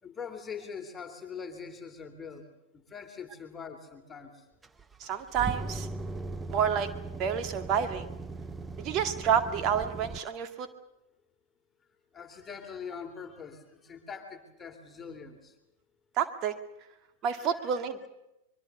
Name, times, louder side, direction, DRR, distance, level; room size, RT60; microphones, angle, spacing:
voice 1, 0.0-2.5 2.7-4.5 12.1-15.6 17.3-17.7, left 6 dB, 15° left, 5 dB, 2.9 m, -43 dB
sound 1, 4.6-10.2, right 3 dB, 15° right, 0.9 m, -39 dB
voice 2, 5.0-5.9 6.5-6.9 7.2-8.1 8.8-10.7 16.2-16.5 17.2-18.1, right 8 dB, 35° right, 8 dB, 2.2 m, -29 dB
25.0 x 22.0 x 6.9 m, 0.90 s
figure-of-eight pair, 90°, 0 cm